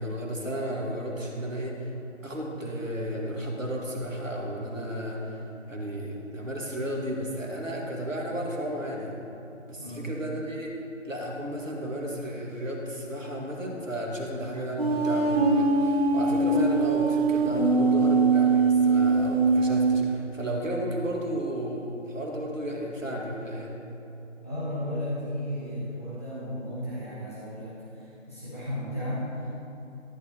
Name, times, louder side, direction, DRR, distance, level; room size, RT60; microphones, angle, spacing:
voice 1, 0.0-1.9 2.2-9.1 9.7-10.8 11.0-23.7, equal, 80° right, -1 dB, 2.0 m, -33 dB
voice 2, 9.8-10.1 24.4-29.4, equal, 10° left, -13 dB, 1.1 m, -34 dB
sound 1, 14.8-20.0, right 3 dB, 50° right, 1.2 m, -22 dB
13.5 x 8.1 x 2.9 m, 2.9 s
figure-of-eight pair, 165°, 38 cm